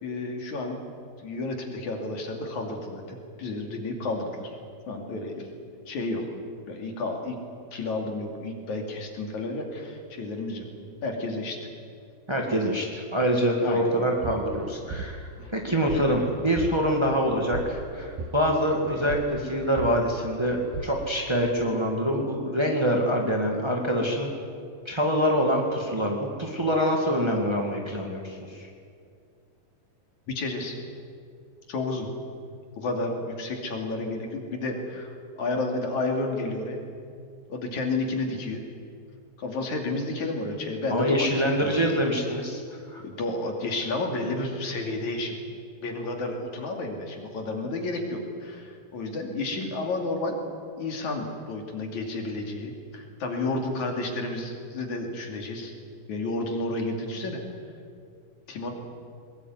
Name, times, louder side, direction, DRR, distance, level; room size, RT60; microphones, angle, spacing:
voice 1, 0.0-0.8 1.2-4.6 4.9-5.5 5.9-6.3 6.7-7.4 7.7-10.7 11.0-11.6 13.6-13.9 15.4-15.5 30.3-30.8 31.7-32.1 32.8-35.1 35.4-36.8 37.5-38.6 39.4-41.9 43.0-45.4 45.8-50.4 50.8-55.7 56.1-57.4 58.5-58.7, left 2 dB, 50° left, 2 dB, 3.7 m, -31 dB
voice 2, 12.3-24.3 24.8-28.7 40.9-43.0, equal, 25° right, 0 dB, 0.6 m, -25 dB
sound 1, 13.9-16.2 16.5-21.0, right 4 dB, 65° right, 2.9 m, -37 dB
21.5 x 20.5 x 9.5 m, 2.3 s
omnidirectional pair, 4.6 m